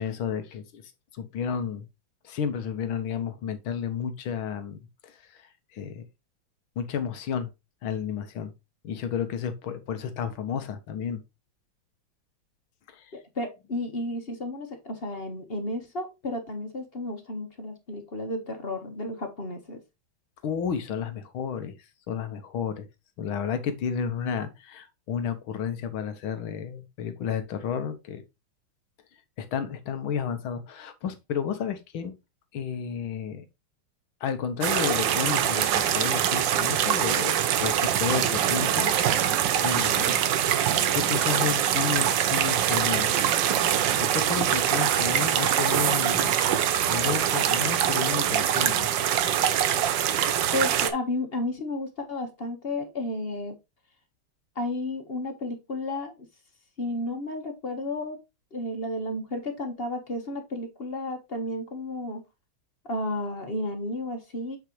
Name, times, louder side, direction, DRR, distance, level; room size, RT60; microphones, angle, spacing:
voice 1, 0.0-1.9 2.2-6.0 6.8-7.5 7.8-8.5 8.8-11.2 12.9-13.1 20.4-21.7 22.1-22.9 23.2-28.2 29.4-32.1 32.5-33.5 34.2-37.3 37.6-38.9 39.6-40.3 40.9-43.1 43.9-46.4 46.9-48.9, left 7 dB, 80° left, 1.9 m, -32 dB
voice 2, 13.1-19.8 50.5-53.6 54.5-56.3 56.8-58.2 58.5-62.2 62.8-64.6, left 1 dB, 30° left, 1.4 m, -32 dB
sound 1, 34.6-50.9, right 10 dB, 70° right, 1.4 m, -24 dB
8.9 x 4.8 x 3.1 m
omnidirectional pair, 2.2 m